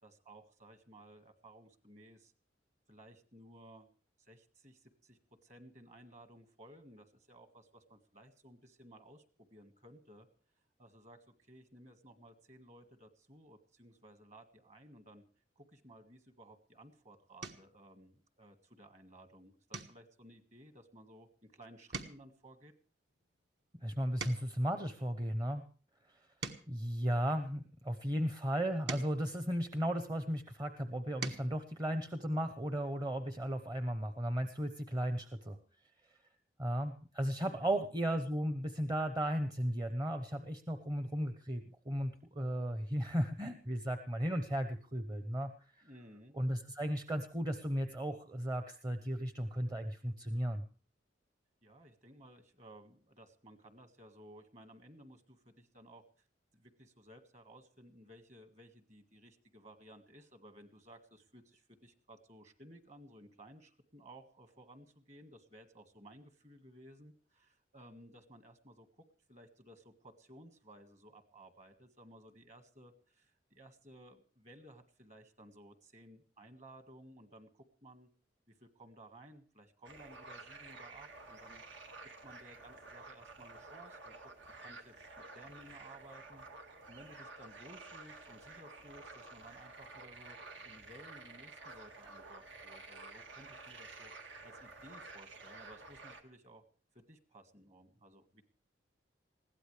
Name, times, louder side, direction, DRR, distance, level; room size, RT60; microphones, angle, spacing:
voice 1, 0.0-2.3 2.9-3.9 4.2-10.3 10.8-15.2 15.5-22.7 37.6-37.9 45.8-46.4 51.6-56.2 56.5-78.1 78.6-81.6 82.2-84.2 84.6-86.4 86.9-90.4 90.6-94.1 94.4-96.6 96.9-98.4, right 1 dB, 40° right, 8 dB, 1.7 m, -57 dB
sound 1, 16.5-16.8 17.4-17.8 18.3-18.7 19.0-19.2 19.7-21.5 21.8-24.7 25.3-27.8 28.5-30.3 30.8-31.6 33.0-33.1 33.4-33.5, right 4 dB, 65° right, 1.5 m, -48 dB
voice 2, 23.8-25.6 26.7-35.6 36.6-45.5 46.3-50.6, equal, 20° right, 8 dB, 0.8 m, -35 dB
sound 2, 79.8-96.2, right 3 dB, 85° right, 2.0 m, -51 dB
21.0 x 16.0 x 3.3 m, 0.39 s
head